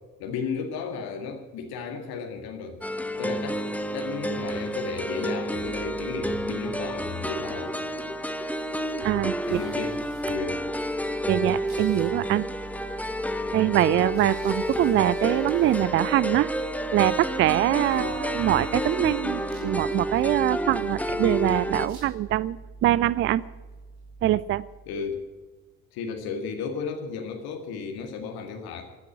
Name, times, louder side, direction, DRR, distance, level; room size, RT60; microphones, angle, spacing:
voice 1, 0.2-2.8 3.2-3.6 3.9-7.8 9.4-10.6 17.9-18.2 24.9-25.2 25.9-28.8, left 5 dB, 55° left, 4 dB, 2.1 m, -34 dB
sound 1, 2.8-21.9, equal, 5° left, 1.0 m, -30 dB
sound 2, 5.6-25.5, right 3 dB, 75° right, 2.8 m, -46 dB
voice 2, 9.0-9.6 11.3-12.5 13.5-16.5 16.9-23.4 24.2-24.6, right 13 dB, 30° right, 20 dB, 0.4 m, -23 dB
13.5 x 9.8 x 9.8 m, 1.3 s
figure-of-eight pair, 55°, 44 cm